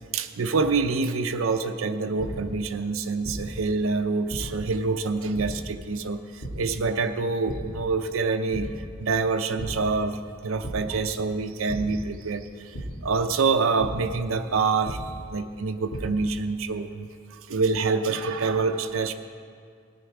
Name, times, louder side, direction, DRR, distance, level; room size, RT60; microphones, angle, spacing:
voice 1, 0.1-10.2 10.4-12.8 13.0-15.0 15.3-17.1 17.5-19.1, right 4 dB, 85° right, 6 dB, 0.6 m, -26 dB
sound 1, 2.2-2.3 3.2-3.4 4.3-4.4 5.3-5.4 6.4-6.5 7.5-7.6 8.0-8.2 8.5-8.6 9.6-9.7 10.6-10.7 11.7-11.8 12.7-12.8 13.8-13.9 14.9-15.0 15.6-16.0, right 1 dB, 90° left, 2.1 m, -35 dB
15.5 x 9.6 x 4.8 m, 2.2 s
head